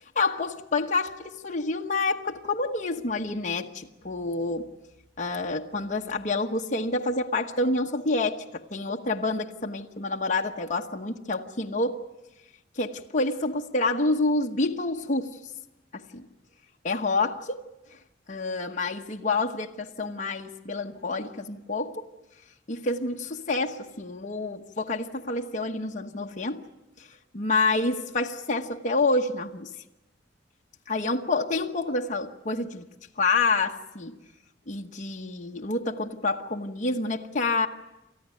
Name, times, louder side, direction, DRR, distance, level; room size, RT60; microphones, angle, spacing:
voice 1, 0.2-4.7 5.2-12.0 12.8-15.4 15.9-16.3 16.8-17.6 17.9-18.0 18.3-22.1 22.7-26.6 27.0-27.1 27.3-29.7 30.9-32.9 33.2-34.1 34.7-37.7, left 3 dB, 40° left, 1.0 m, -28 dB
29.0 x 14.0 x 9.2 m
head